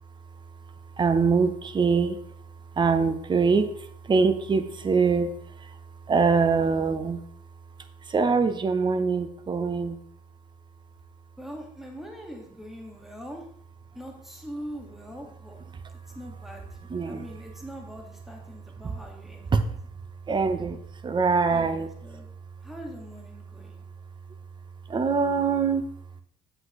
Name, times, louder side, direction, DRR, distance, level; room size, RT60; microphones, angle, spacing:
voice 1, 0.9-7.2 8.0-10.0 16.9-17.3 18.8-18.9 19.5-19.8 20.3-21.9 24.9-25.9, right 5 dB, 25° right, 10 dB, 0.8 m, -24 dB
voice 2, 11.4-13.5 13.9-15.6 16.1-19.6 21.5-22.3 22.6-23.8, equal, ahead, 1 dB, 1.9 m, -42 dB
8.1 x 7.8 x 3.2 m, 0.66 s
cardioid pair, 110°, 17 cm